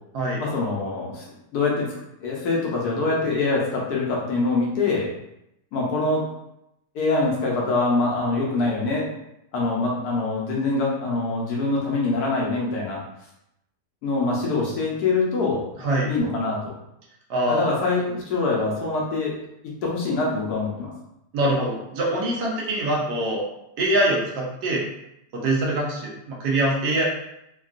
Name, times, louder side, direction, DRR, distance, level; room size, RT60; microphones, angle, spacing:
voice 1, 0.4-1.2 1.5-1.9 2.2-5.1 5.7-6.3 6.9-9.1 9.5-13.0 14.0-15.6 16.1-16.7 17.5-19.3 19.8-20.9, left 3 dB, 70° left, -3 dB, 1.2 m, -24 dB
voice 2, 15.8-16.1 17.3-17.7 21.3-23.4 23.8-24.8 25.3-27.0, right 1 dB, 70° right, -3 dB, 1.3 m, -24 dB
3.5 x 2.3 x 2.4 m, 0.83 s
omnidirectional pair, 1.9 m